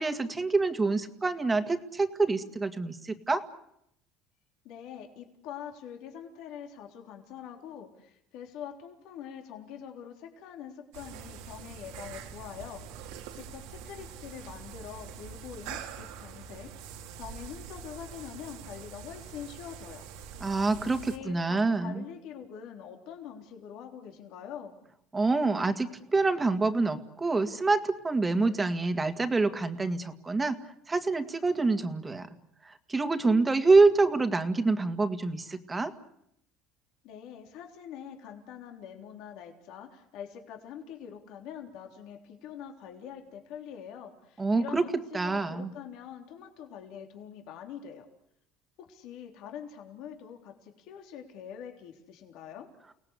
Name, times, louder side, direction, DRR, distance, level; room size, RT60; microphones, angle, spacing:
voice 1, 0.0-3.4 20.4-22.0 25.1-30.6 30.9-32.3 32.7-35.9 44.4-44.8 45.1-45.7, right 3 dB, 15° right, 8 dB, 2.0 m, -26 dB
voice 2, 4.6-20.1 20.8-24.8 37.0-48.1 48.8-52.7, left 8 dB, 70° left, 3 dB, 3.6 m, -44 dB
sound 1, 10.9-21.2, right 7 dB, 85° right, 2.7 m, -44 dB
30.0 x 18.5 x 8.3 m, 0.78 s
supercardioid pair, 115°, 0 cm